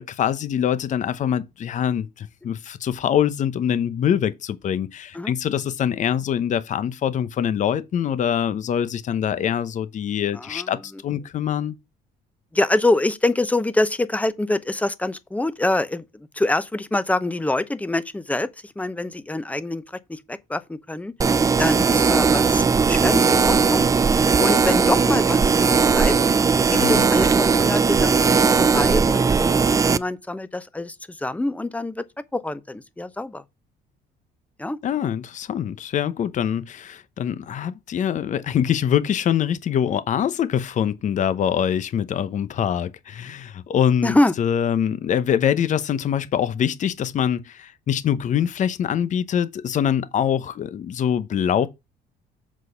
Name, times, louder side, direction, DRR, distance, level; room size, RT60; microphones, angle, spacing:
voice 1, 0.0-11.8 26.8-27.0 34.8-51.7, left 9 dB, 45° left, 0.8 m, -24 dB
voice 2, 10.3-10.7 12.5-21.1 21.6-23.9 24.4-26.2 26.7-32.0 32.3-33.4 34.6-34.8 44.0-44.3, left 2 dB, 10° left, 0.8 m, -25 dB
sound 1, 21.2-30.0, right 5 dB, 20° right, 0.4 m, -18 dB
7.4 x 4.2 x 6.8 m
cardioid pair, 110°, 17 cm